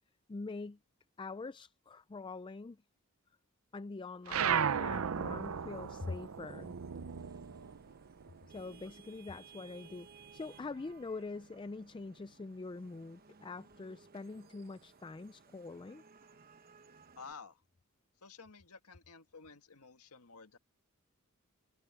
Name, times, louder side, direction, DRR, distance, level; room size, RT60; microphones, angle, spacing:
voice 1, 0.3-0.8 1.2-2.8 3.7-6.7 8.5-16.0, left 3 dB, 20° left, 0.3 m, -44 dB
sound 1, 4.3-9.1 9.4-10.9, right 7 dB, 70° right, 0.6 m, -36 dB
Vehicle horn car horn honking / Traffic noise roadway noise, 4.6-17.3, right 5 dB, 40° right, 1.0 m, -61 dB
sound 2, 7.0-9.9 10.4-10.6 10.9-11.2, equal, 20° right, 3.5 m, -69 dB
voice 2, 17.2-17.6 18.2-20.6, left 5 dB, 90° left, 1.7 m, -52 dB
head